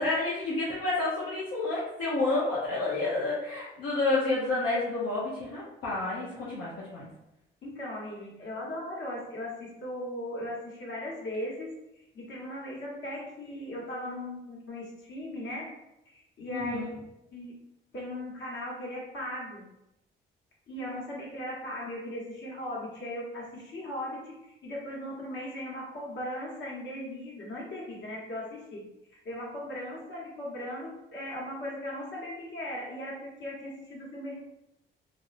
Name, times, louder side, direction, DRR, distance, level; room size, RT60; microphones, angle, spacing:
voice 1, 0.0-7.1 16.5-16.9, left 2 dB, 80° left, -8 dB, 0.8 m, -29 dB
voice 2, 7.6-11.7 12.1-15.7 16.1-16.9 17.3-17.5 17.9-19.6 20.7-28.8 29.2-34.4, left 1 dB, 65° left, -4 dB, 1.2 m, -38 dB
3.1 x 2.6 x 2.5 m, 0.88 s
cardioid pair, 90°, 20 cm